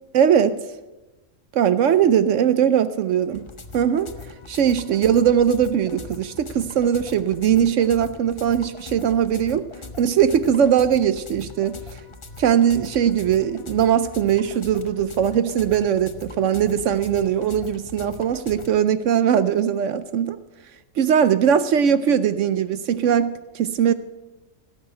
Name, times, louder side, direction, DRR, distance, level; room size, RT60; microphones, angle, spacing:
voice 1, 0.1-0.6 1.5-3.4 3.7-4.1 4.5-9.7 10.0-12.0 12.4-20.4 21.0-23.9, right 8 dB, 70° right, 13 dB, 0.9 m, -20 dB
sound 1, 3.3-18.7, left 4 dB, 25° left, 0.7 m, -41 dB
17.5 x 6.1 x 9.8 m, 1.1 s
omnidirectional pair, 1.4 m